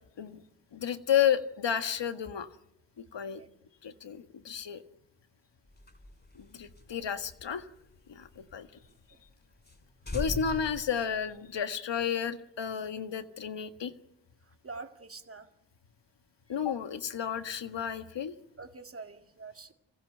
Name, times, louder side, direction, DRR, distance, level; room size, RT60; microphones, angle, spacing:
voice 1, 0.7-2.5 3.1-3.4 3.8-4.8 6.4-7.7 8.1-8.7 10.1-13.9 16.5-18.3, left 8 dB, 65° left, 10 dB, 1.7 m, -32 dB
sound 1, 5.7-8.5 8.9-9.0 9.3-9.4 9.6-9.8 10.0-11.7, left 2 dB, 20° left, 3.8 m, -41 dB
voice 2, 14.6-15.5 18.6-19.7, right 4 dB, 30° right, 6 dB, 2.1 m, -45 dB
25.5 x 15.5 x 9.0 m, 0.85 s
cardioid pair, 45°, 47 cm